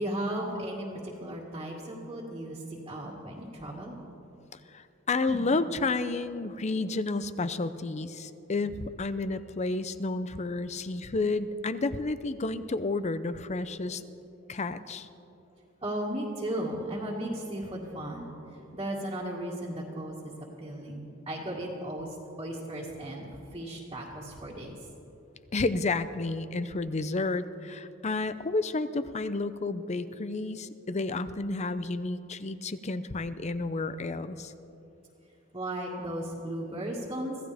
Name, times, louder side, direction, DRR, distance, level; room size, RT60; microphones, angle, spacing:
voice 1, 0.0-4.0 5.3-5.4 15.8-18.3 18.7-20.3 20.6-24.8 35.5-37.4, right 1 dB, 25° right, -6 dB, 2.0 m, -35 dB
voice 2, 4.7-14.0 14.5-15.1 25.5-34.5, left 3 dB, 35° left, 13 dB, 0.6 m, -31 dB
25.5 x 16.0 x 3.5 m, 2.8 s
head